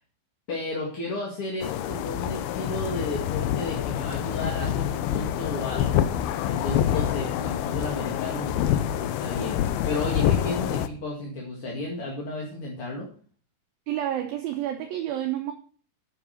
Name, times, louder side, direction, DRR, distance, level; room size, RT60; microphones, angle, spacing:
voice 1, 0.5-6.1 6.4-13.1, left 2 dB, 40° left, -2 dB, 2.2 m, -33 dB
sound 1, 1.6-10.9, left 11 dB, 80° left, 2.2 m, -27 dB
voice 2, 13.9-15.5, right 12 dB, 70° right, 4 dB, 2.5 m, -29 dB
10.0 x 7.4 x 6.4 m, 0.42 s
omnidirectional pair, 5.1 m